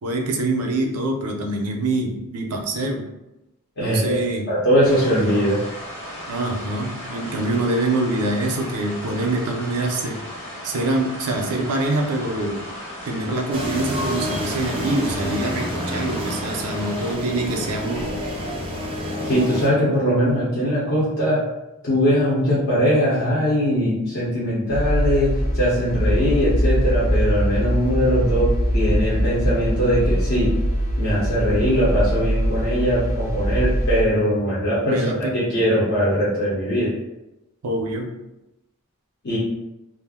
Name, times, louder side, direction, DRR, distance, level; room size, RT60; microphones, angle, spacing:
voice 1, 0.0-3.0 3.8-4.5 6.3-10.2 10.6-12.6 13.1-18.1 34.9-35.4 37.6-38.1, right 2 dB, 90° right, 3 dB, 0.5 m, -25 dB
voice 2, 3.8-4.2 4.5-5.6 19.2-21.4 21.8-30.5 31.0-36.9 39.2-39.4, equal, 55° left, -8 dB, 0.8 m, -21 dB
sound 1, 4.8-17.1, equal, 10° left, 0.8 m, -36 dB
sound 2, 13.5-19.7, equal, 25° right, 0.5 m, -28 dB
sound 3, 24.7-34.0, equal, 35° left, 0.4 m, -22 dB
2.4 x 2.0 x 3.5 m, 0.94 s
head